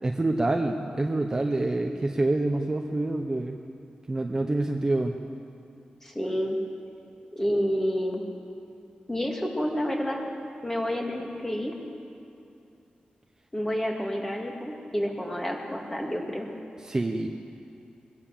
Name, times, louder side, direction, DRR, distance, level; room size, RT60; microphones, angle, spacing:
voice 1, 0.0-3.6 4.1-5.2 16.8-17.3, right 2 dB, 20° right, 3 dB, 0.9 m, -26 dB
voice 2, 6.0-6.6 7.3-8.2 9.1-10.3 10.6-11.7 13.5-16.5, equal, 15° left, 0 dB, 2.5 m, -29 dB
22.0 x 17.0 x 7.5 m, 2.7 s
wide cardioid pair, 170°, 3 cm